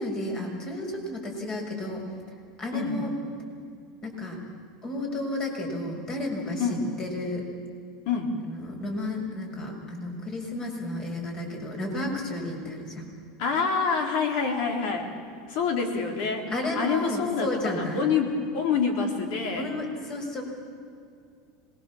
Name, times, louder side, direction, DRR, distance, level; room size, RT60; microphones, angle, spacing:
voice 1, 0.0-2.0 2.6-3.1 4.0-4.4 4.8-6.7 7.0-7.4 8.4-13.1 16.5-18.1 19.6-20.4, left 1 dB, 35° left, 1 dB, 6.6 m, -32 dB
voice 2, 8.1-8.4 13.4-15.1 15.5-16.5 16.8-19.7, left 5 dB, 65° left, 3 dB, 4.1 m, -27 dB
26.0 x 21.0 x 7.5 m, 2.3 s
supercardioid pair, 115°, 2 cm